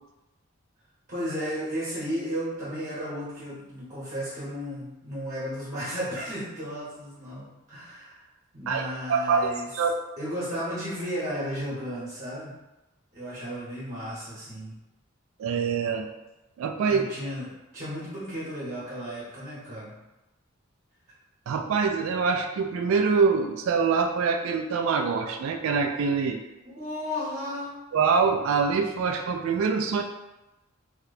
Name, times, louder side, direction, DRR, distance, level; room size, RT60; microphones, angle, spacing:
voice 1, 1.1-8.2 8.5-9.7 10.2-12.5 13.1-14.8 16.9-19.9 26.7-27.7, equal, 40° right, -11 dB, 1.0 m, -34 dB
voice 2, 8.7-9.5 9.7-9.9 15.4-16.1 16.6-17.0 21.5-26.4 27.9-30.0, right 5 dB, 85° right, 5 dB, 0.3 m, -24 dB
2.8 x 2.2 x 3.9 m, 1.0 s
head